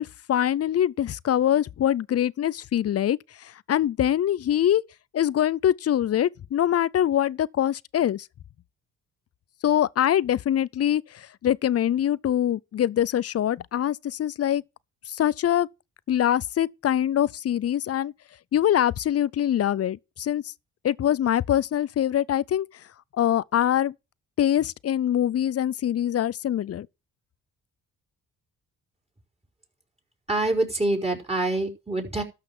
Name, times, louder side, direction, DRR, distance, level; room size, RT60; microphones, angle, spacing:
voice 1, 0.0-4.8 5.1-8.3 9.6-14.6 15.1-15.7 16.1-18.1 18.5-20.5 20.8-22.7 23.1-23.9 24.4-26.9, left 11 dB, 45° left, 0.5 m, -24 dB
voice 2, 30.3-32.2, right 2 dB, 20° right, 4.6 m, -25 dB
13.0 x 5.8 x 6.0 m
cardioid pair, 75°, 34 cm